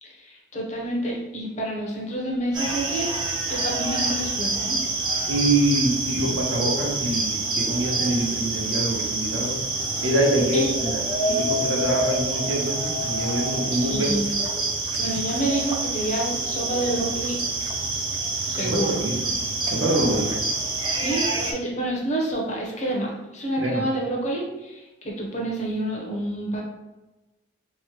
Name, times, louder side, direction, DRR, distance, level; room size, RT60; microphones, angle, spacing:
voice 1, 0.0-3.1 3.5-4.8 10.5-10.7 13.7-14.3 15.0-17.4 18.4-19.0 20.9-26.6, right 1 dB, 35° left, -2 dB, 0.6 m, -28 dB
sound 1, 2.5-21.5, right 2 dB, 25° right, 0.3 m, -27 dB
voice 2, 5.3-9.6 10.0-11.0 11.3-14.1 18.6-19.2 19.7-20.3 23.6-23.9, right 1 dB, 80° right, -2 dB, 0.7 m, -25 dB
2.9 x 2.0 x 2.8 m, 1.1 s
head